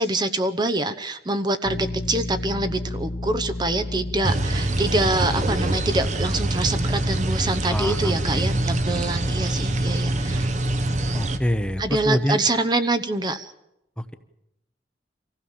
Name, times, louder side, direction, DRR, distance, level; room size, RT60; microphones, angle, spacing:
voice 1, 0.0-10.5 11.8-13.5, right 2 dB, 25° right, 10 dB, 0.9 m, -25 dB
sound 1, 1.6-12.1, left 1 dB, 55° left, 0.9 m, -33 dB
sound 2, 4.2-11.4, right 2 dB, 40° right, 1.2 m, -25 dB
voice 2, 7.7-8.6 11.1-12.4 14.0-14.1, equal, 5° left, 10 dB, 0.9 m, -26 dB
25.0 x 16.0 x 7.3 m, 0.87 s
head